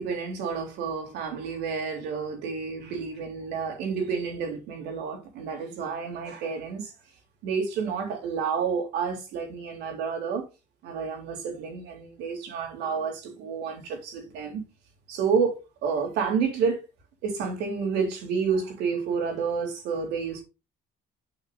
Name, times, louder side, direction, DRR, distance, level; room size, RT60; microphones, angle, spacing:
voice 1, 0.0-6.9 7.4-10.4 10.8-14.6 15.1-16.8 17.2-20.4, right 6 dB, 90° right, 3.2 m, -30 dB
8.8 x 5.8 x 2.5 m
cardioid pair, 110°, 17 cm